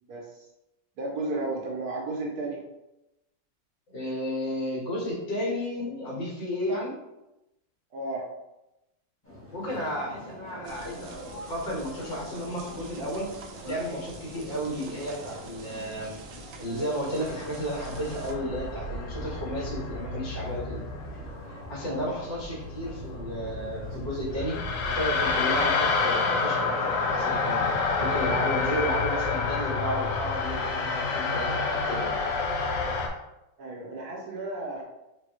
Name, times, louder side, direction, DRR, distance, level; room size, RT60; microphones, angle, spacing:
voice 1, 0.0-0.5 1.0-2.6 7.9-8.3 21.8-22.2 33.6-34.9, right 2 dB, 65° right, -2 dB, 1.1 m, -33 dB
voice 2, 3.9-7.0 9.5-13.3 13.6-16.1 16.6-20.8 21.7-27.6 28.0-32.2, equal, 70° left, -6 dB, 2.2 m, -33 dB
sound 1, 9.2-27.8, equal, 10° left, 0.9 m, -46 dB
sound 2, 10.6-18.3, right 3 dB, 80° right, 1.3 m, -46 dB
sound 3, 17.2-33.1, left 4 dB, 90° left, 1.4 m, -29 dB
4.7 x 2.7 x 3.0 m, 0.93 s
omnidirectional pair, 2.0 m